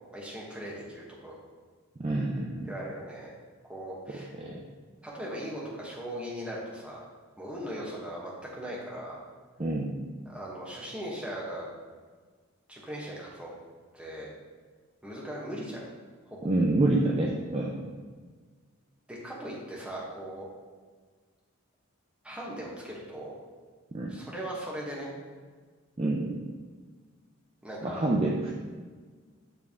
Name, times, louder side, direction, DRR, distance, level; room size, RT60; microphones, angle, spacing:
voice 1, 0.1-1.3 2.7-3.3 3.7-4.3 5.0-7.0 7.4-9.2 10.2-11.7 12.7-13.5 13.9-14.3 15.0-15.8 16.2-16.5 19.1-20.5 22.2-23.4 24.1-25.1 27.6-28.1, equal, 5° right, -5 dB, 1.1 m, -39 dB
voice 2, 2.0-2.7 4.4-4.5 9.6-9.9 16.4-17.8 23.9-24.1 26.0-26.3 27.8-28.5, right 2 dB, 25° right, -2 dB, 0.4 m, -27 dB
8.5 x 3.5 x 3.5 m, 1.5 s
head